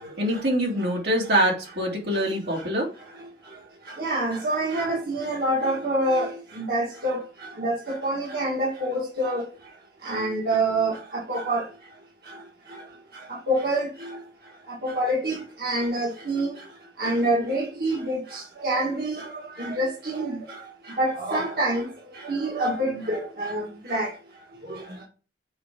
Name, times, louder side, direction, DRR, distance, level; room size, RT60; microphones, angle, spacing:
voice 1, 0.2-2.9, right 1 dB, 75° right, 2.4 m, -24 dB
voice 2, 4.0-6.3 6.6-7.2 7.6-9.4 10.0-11.0 11.3-11.6 13.5-13.9 14.8-16.5 17.0-19.1 19.6-20.4 21.0-21.9 22.2-23.6 23.9-24.1, right 1 dB, 60° right, 1.8 m, -26 dB
6.4 x 4.6 x 3.7 m
head